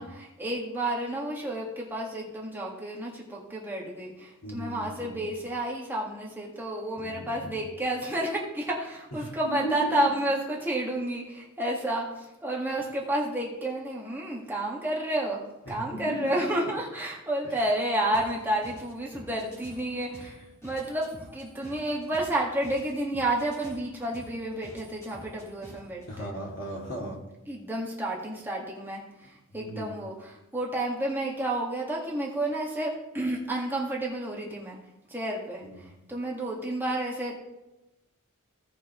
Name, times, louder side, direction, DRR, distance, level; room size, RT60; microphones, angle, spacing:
voice 1, 0.0-26.3 27.5-34.8 35.1-37.3, right 1 dB, 10° right, -3 dB, 1.8 m, -31 dB
voice 2, 4.4-5.2 7.0-7.6 9.2-10.2 15.6-16.7 17.4-17.5 26.1-27.2 29.5-29.9 35.6-35.8, right 1 dB, 60° left, -3 dB, 2.7 m, -36 dB
sound 1, 18.1-26.1, equal, 15° left, 2.4 m, -49 dB
17.0 x 6.0 x 3.1 m, 0.99 s
head